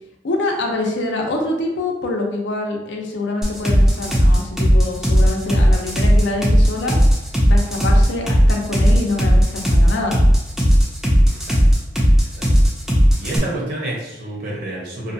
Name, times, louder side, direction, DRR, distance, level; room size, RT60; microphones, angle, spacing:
voice 1, 0.2-7.0 7.5-10.2, left 2 dB, 75° left, 0 dB, 0.5 m, -25 dB
sound 1, 3.4-13.4, equal, 5° right, 0.4 m, -14 dB
voice 2, 11.2-11.6 12.1-12.5 13.2-15.1, right 1 dB, 55° right, -4 dB, 0.8 m, -29 dB
2.7 x 2.2 x 2.6 m, 0.92 s
head